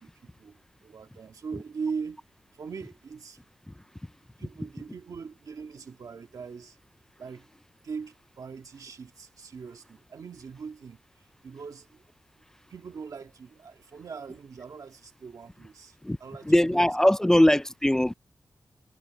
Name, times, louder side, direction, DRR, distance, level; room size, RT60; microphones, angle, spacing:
voice 1, 0.0-2.2 2.5-3.4 4.4-6.8 7.2-7.5 7.8-11.0 11.4-12.0 12.7-16.9, right 5 dB, 60° right, 1.9 m, -40 dB
voice 2, 16.5-18.1, left 1 dB, 5° left, 0.4 m, -21 dB
wide cardioid pair, 180°, 7 cm